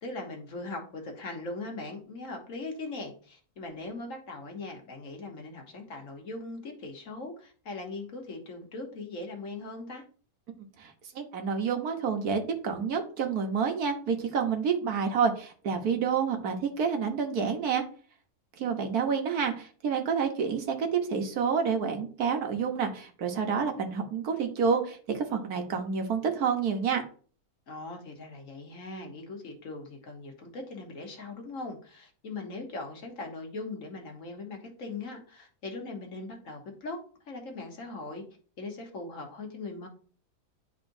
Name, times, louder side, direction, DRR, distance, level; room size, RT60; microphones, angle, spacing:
voice 1, 0.0-10.0 27.7-37.0 37.3-38.2 38.6-39.9, left 3 dB, 60° left, 2 dB, 1.5 m, -40 dB
voice 2, 10.8-17.8 18.6-27.0, right 6 dB, 75° right, 4 dB, 1.5 m, -29 dB
10.5 x 3.8 x 2.6 m, 0.42 s
omnidirectional pair, 1.6 m